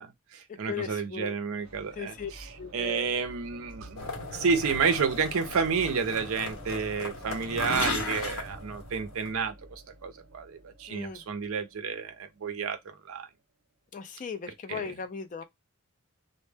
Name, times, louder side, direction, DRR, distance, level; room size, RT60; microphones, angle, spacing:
voice 1, 0.0-13.3 14.7-14.9, right 5 dB, 65° right, 0.5 m, -31 dB
voice 2, 0.7-1.4 2.0-2.3 2.6-3.1 10.9-11.2 13.9-15.4, left 6 dB, 35° left, 0.3 m, -37 dB
sound 1, 1.5-13.3, right 1 dB, 45° right, 0.9 m, -49 dB
sound 2, 4.0-9.3, left 3 dB, 60° left, 0.8 m, -36 dB
2.1 x 2.0 x 3.2 m
head